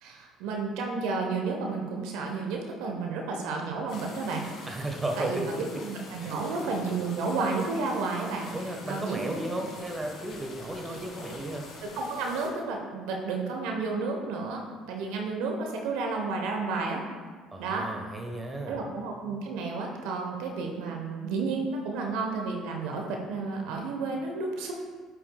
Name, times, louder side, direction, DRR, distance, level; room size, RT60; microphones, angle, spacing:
voice 1, 0.0-4.4 5.2-8.5 8.9-9.3 12.0-14.6 14.9-17.0 17.6-17.9 18.7-24.7, right 4 dB, 70° right, 1 dB, 1.0 m, -31 dB
sound 1, 3.9-12.5, left 2 dB, 55° left, 2.1 m, -45 dB
voice 2, 4.7-5.6 6.2-6.6 8.5-11.7 17.5-18.8, right 1 dB, 20° right, 3 dB, 1.3 m, -34 dB
9.8 x 7.4 x 2.3 m, 1.5 s
hypercardioid pair, 60°, 0 cm